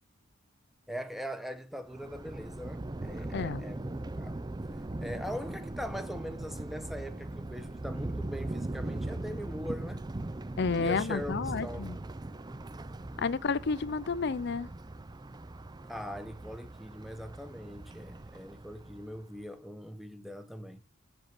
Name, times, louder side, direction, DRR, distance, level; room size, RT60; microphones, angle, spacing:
voice 1, 0.9-4.5 5.0-10.0 10.8-12.0 15.8-20.8, equal, ahead, 1.2 m, -41 dB
Thunder, 1.9-19.3, right 2 dB, 20° right, 0.5 m, -40 dB
voice 2, 10.6-12.0 13.2-14.7, left 5 dB, 55° left, 0.5 m, -31 dB
7.9 x 7.3 x 6.0 m
head